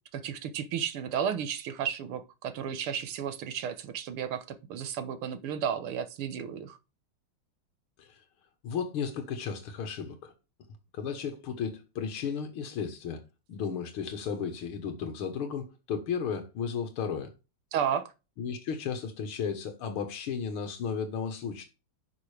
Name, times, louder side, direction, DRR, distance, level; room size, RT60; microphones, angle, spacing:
voice 1, 0.1-6.8 17.7-18.1, right 8 dB, 90° right, 2.0 m, -33 dB
voice 2, 8.6-10.3 10.9-13.2 13.5-17.3 18.4-21.6, left 6 dB, 90° left, 2.2 m, -34 dB
11.0 x 6.6 x 3.3 m
omnidirectional pair, 2.3 m